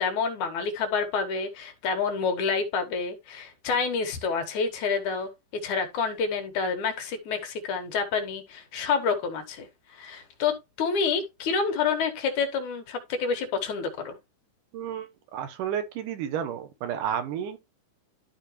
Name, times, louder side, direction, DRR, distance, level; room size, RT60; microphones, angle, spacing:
voice 1, 0.0-5.3 5.6-9.7 9.9-14.1, left 5 dB, 70° left, 2.7 m, -28 dB
voice 2, 14.7-17.6, right 9 dB, 80° right, 2.6 m, -31 dB
12.0 x 4.5 x 3.0 m
omnidirectional pair, 3.7 m